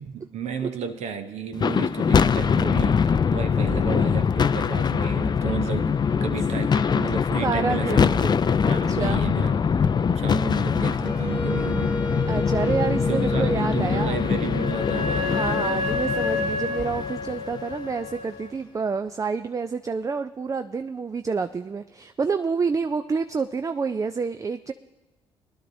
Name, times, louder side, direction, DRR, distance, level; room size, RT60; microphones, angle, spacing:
voice 1, 0.0-5.9 6.2-9.6 10.2-12.0 13.1-15.3, right 7 dB, 65° right, 7 dB, 0.9 m, -33 dB
sound 1, 1.5-17.9, left 6 dB, 35° left, 0.4 m, -23 dB
voice 2, 7.4-8.1 8.7-9.2 12.3-14.2 14.9-24.7, right 5 dB, 25° right, 9 dB, 0.4 m, -28 dB
Wind instrument woodwind instrument, 11.0-16.0, right 1 dB, 10° right, 1.2 m, -33 dB
Wind instrument woodwind instrument 2, 13.9-18.5, left 3 dB, 80° left, 0.8 m, -30 dB
21.0 x 11.0 x 2.7 m, 1.1 s
hypercardioid pair, 50°, 12 cm